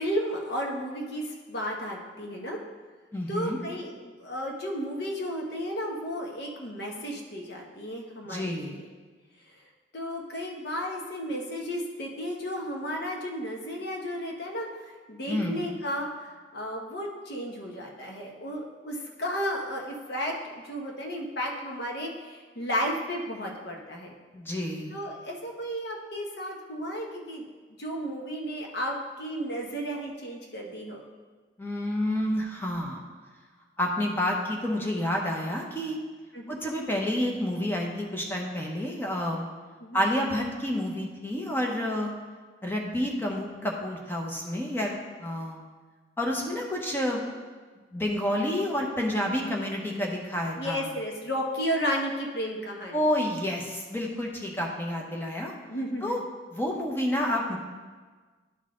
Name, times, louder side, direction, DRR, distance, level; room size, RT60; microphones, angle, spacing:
voice 1, 0.0-2.6 3.3-8.8 9.9-14.7 15.1-24.1 24.9-27.4 27.8-31.0 36.3-36.6 39.8-40.1 50.6-53.1 55.7-56.2, equal, 60° left, 0 dB, 1.1 m, -33 dB
voice 2, 3.1-3.6 8.3-8.8 15.3-15.6 24.3-25.0 31.6-33.0 33.8-36.0 36.5-39.5 39.9-42.1 42.6-44.9 45.2-45.6 46.2-47.2 47.9-50.9 52.9-55.5 56.0-56.2 56.5-57.6, left 1 dB, 10° left, -1 dB, 0.9 m, -29 dB
11.0 x 4.0 x 3.7 m, 1.4 s
head